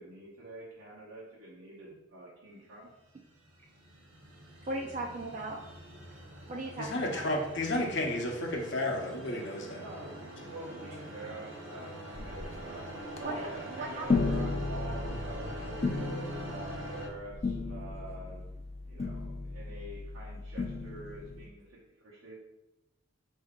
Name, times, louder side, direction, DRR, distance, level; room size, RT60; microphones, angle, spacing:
voice 1, 0.0-2.9 9.7-10.1 10.4-12.9 13.2-18.5 18.9-22.3, right 2 dB, 90° right, -7 dB, 0.9 m, -46 dB
sound 1, 3.0-17.1, right 1 dB, 65° right, 0.8 m, -44 dB
voice 2, 4.7-5.6 6.5-7.3 13.2-14.3, right 2 dB, 35° right, 0 dB, 0.3 m, -38 dB
voice 3, 6.8-9.8, left 1 dB, 60° left, 1 dB, 0.7 m, -32 dB
sound 2, 12.2-12.7 13.2-13.4 14.1-21.5, left 3 dB, 30° left, 0.4 m, -35 dB
4.6 x 2.7 x 3.5 m, 0.92 s
head